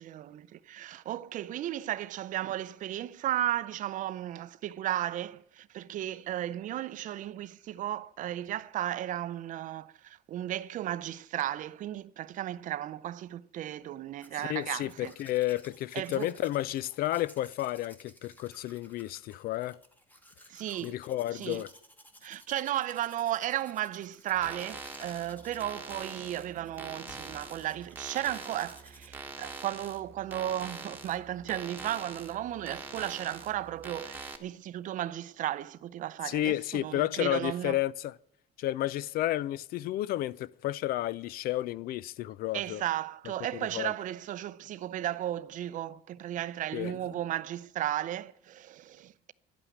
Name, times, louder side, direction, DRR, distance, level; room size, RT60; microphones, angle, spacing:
voice 1, 0.0-15.1 15.9-16.3 20.5-21.0 21.3-21.6 22.2-37.8 42.5-49.3, right 12 dB, 50° right, 0.5 m, -35 dB
Domestic sounds home sounds, 14.2-29.1, left 1 dB, 10° left, 1.3 m, -56 dB
voice 2, 14.4-19.8 20.8-21.7 36.3-38.1 38.6-42.8 43.5-43.9 46.7-47.0, left 14 dB, 60° left, 0.4 m, -32 dB
sound 1, 24.3-34.4, right 3 dB, 10° right, 1.2 m, -44 dB
sound 2, 27.1-29.5, left 1 dB, 35° left, 3.4 m, -59 dB
11.5 x 9.0 x 9.4 m
cardioid pair, 160°, 18 cm